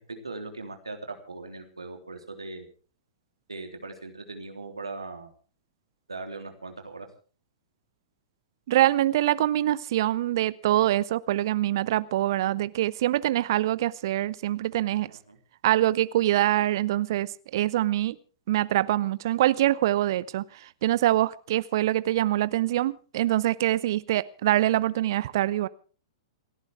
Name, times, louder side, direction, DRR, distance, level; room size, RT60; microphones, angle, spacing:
voice 1, 0.1-2.7 3.5-5.3 6.1-7.1 15.1-15.4, right 3 dB, 80° right, 3.4 m, -39 dB
voice 2, 8.7-15.1 15.6-18.2 18.5-25.7, right 14 dB, 50° right, 0.6 m, -24 dB
28.5 x 11.5 x 3.5 m
figure-of-eight pair, 105°, 3 cm